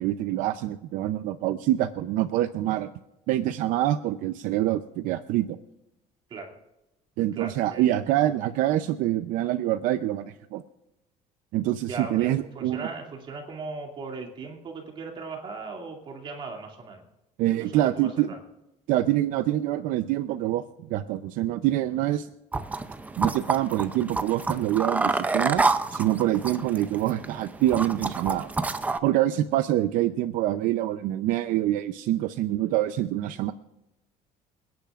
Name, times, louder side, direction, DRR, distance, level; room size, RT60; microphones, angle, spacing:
voice 1, 0.0-2.9 3.3-5.6 7.2-10.6 11.5-12.9 17.4-18.3 18.9-20.6 20.9-22.3 23.2-25.6 25.9-28.5 29.0-33.5, right 14 dB, 65° right, 10 dB, 0.6 m, -25 dB
voice 2, 7.3-7.9 11.9-17.0 17.6-18.4, right 4 dB, 35° right, 2 dB, 2.4 m, -38 dB
sound 1, 22.5-29.0, right 3 dB, 10° right, 0.5 m, -28 dB
27.0 x 10.5 x 2.5 m, 0.94 s
cardioid pair, 165°, 15 cm